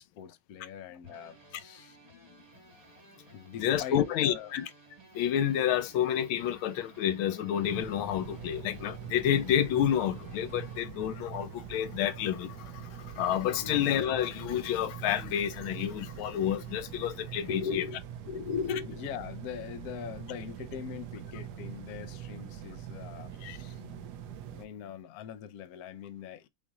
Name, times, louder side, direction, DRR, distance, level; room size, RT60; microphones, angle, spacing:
voice 1, 0.0-2.0 3.3-4.5 13.6-13.7 17.5-18.0 18.3-23.8 24.5-26.5, left 7 dB, 65° left, 0.9 m, -40 dB
sound 1, 1.0-10.8, right 1 dB, 25° right, 0.9 m, -56 dB
voice 2, 3.6-4.7 5.1-17.8 23.4-23.6, left 10 dB, 80° left, 1.5 m, -29 dB
sound 2, 7.6-24.7, right 9 dB, 70° right, 1.0 m, -43 dB
7.0 x 2.4 x 2.9 m
omnidirectional pair, 2.2 m